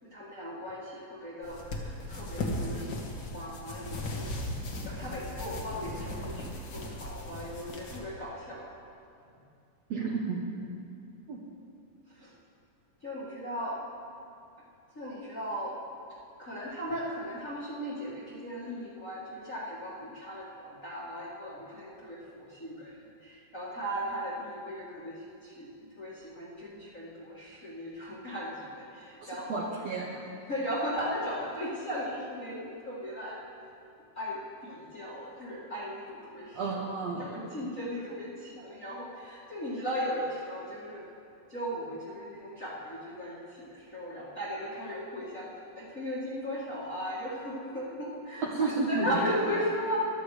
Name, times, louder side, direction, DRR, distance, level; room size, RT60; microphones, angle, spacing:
voice 1, 0.0-8.7 12.1-12.3 13.0-13.9 14.9-15.8 16.4-29.7 30.5-33.4 34.1-36.9 37.2-41.0 41.5-50.0, equal, 30° left, -7 dB, 1.5 m, -37 dB
sound 1, 1.4-8.0, left 1 dB, 55° left, 1.2 m, -37 dB
voice 2, 9.9-10.4 11.3-11.4 29.2-30.2 36.5-37.4 48.4-49.1, right 4 dB, 65° right, -2 dB, 1.7 m, -32 dB
15.5 x 12.0 x 4.9 m, 2.5 s
omnidirectional pair, 4.1 m